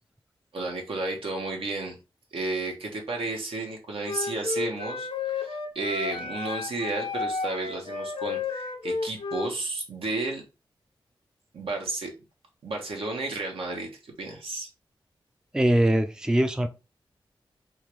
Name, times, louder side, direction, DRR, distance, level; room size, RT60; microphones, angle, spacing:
voice 1, 0.5-2.0 2.3-10.4 11.5-12.1 12.6-14.7, right 2 dB, 80° right, 1.0 m, -32 dB
Wind instrument woodwind instrument, 4.0-9.5, left 4 dB, 80° left, 0.6 m, -32 dB
voice 2, 15.5-16.7, right 1 dB, 5° right, 0.4 m, -22 dB
3.6 x 2.3 x 3.0 m
cardioid pair, 65°, 9 cm